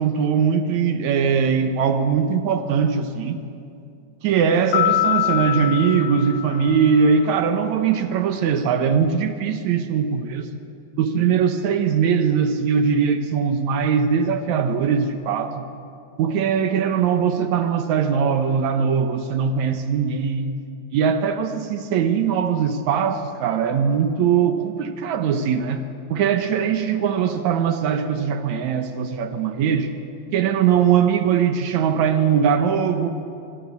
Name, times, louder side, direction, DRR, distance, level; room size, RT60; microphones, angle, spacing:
voice 1, 0.0-3.4 4.2-10.5 11.0-15.6 16.2-20.6 20.9-25.8 26.1-29.9 30.3-33.1, right 7 dB, 75° right, 8 dB, 2.4 m, -21 dB
sound 1, 4.7-7.2, left 14 dB, 70° left, 1.7 m, -24 dB
25.0 x 22.0 x 8.4 m, 2.6 s
omnidirectional pair, 3.4 m